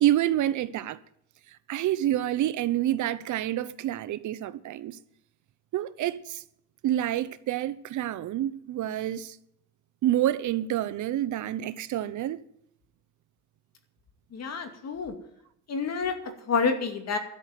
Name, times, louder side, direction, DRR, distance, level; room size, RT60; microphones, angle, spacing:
voice 1, 0.0-1.0 1.7-5.0 5.7-6.4 6.8-9.4 10.0-12.4, right 12 dB, 75° right, 0.8 m, -28 dB
voice 2, 14.3-15.1 15.7-16.2 16.5-17.2, left 5 dB, 60° left, 2.4 m, -28 dB
12.5 x 6.7 x 9.4 m
cardioid pair, 90°, 30 cm